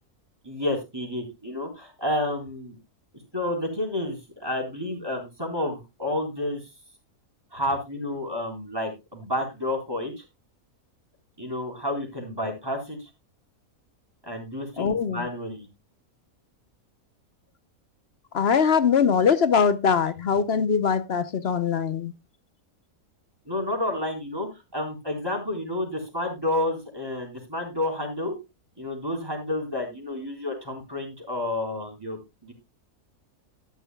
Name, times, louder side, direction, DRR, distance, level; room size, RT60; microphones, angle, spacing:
voice 1, 0.4-2.8 3.3-6.6 7.5-10.2 11.4-13.1 14.2-15.7 23.5-24.5 24.7-28.3 28.8-32.5, left 1 dB, 15° right, 4.1 m, -30 dB
voice 2, 14.8-15.2 18.3-22.1, left 6 dB, 50° left, 0.9 m, -22 dB
13.0 x 11.0 x 2.3 m
omnidirectional pair, 1.5 m